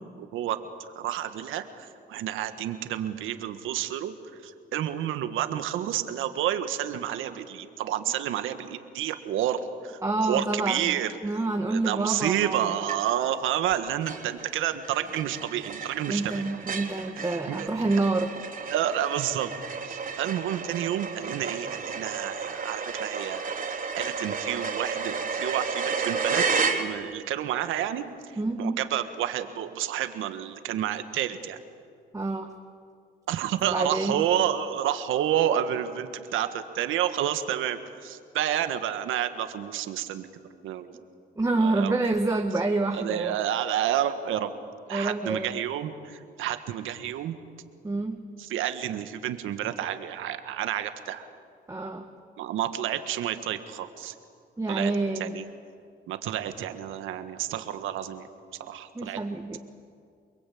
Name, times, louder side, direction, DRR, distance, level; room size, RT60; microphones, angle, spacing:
voice 1, 0.2-4.1 4.4-11.1 11.7-16.5 17.5-17.7 18.7-19.5 19.8-23.5 23.8-31.6 33.3-40.3 40.6-40.9 41.6-41.9 42.9-44.5 44.9-47.3 48.4-51.3 52.4-54.1 54.7-54.9 55.2-55.4 56.1-58.3 58.7-59.2, right 11 dB, 90° right, 9 dB, 1.7 m, -30 dB
voice 2, 10.0-12.7 16.1-18.3 28.4-28.8 32.1-32.5 33.6-34.2 41.3-43.4 44.9-45.6 47.8-48.2 51.7-52.0 54.6-55.4 58.9-59.6, right 2 dB, 15° right, 3 dB, 1.7 m, -27 dB
sound 1, 12.9-13.3 13.7-13.8 14.1-27.3, right 5 dB, 45° right, 3.5 m, -32 dB
29.5 x 22.0 x 8.7 m, 2.3 s
cardioid pair, 90°, 20 cm